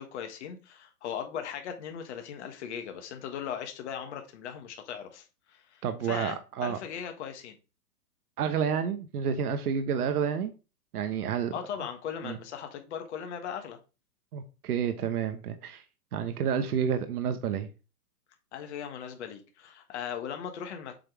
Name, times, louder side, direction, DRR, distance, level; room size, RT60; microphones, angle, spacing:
voice 1, 0.0-6.4 6.6-7.5 11.5-13.8 18.5-20.9, left 8 dB, 45° left, 1.4 m, -38 dB
voice 2, 5.8-6.8 8.4-10.5 10.9-11.5 12.2-12.4 14.3-15.8 16.1-17.7, right 7 dB, 70° right, 1.1 m, -29 dB
7.6 x 3.6 x 4.6 m
hypercardioid pair, 145°, 47 cm